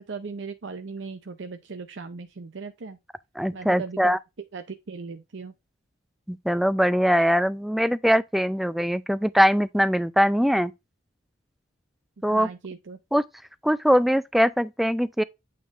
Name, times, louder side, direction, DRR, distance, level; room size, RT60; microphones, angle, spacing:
voice 1, 0.0-3.0 3.5-4.2 4.5-5.5 12.3-13.0, right 4 dB, 70° right, 0.6 m, -38 dB
voice 2, 3.4-4.2 6.3-10.7 12.2-12.5 13.1-13.2 13.6-15.2, equal, ahead, 0.4 m, -22 dB
8.6 x 5.3 x 2.5 m
head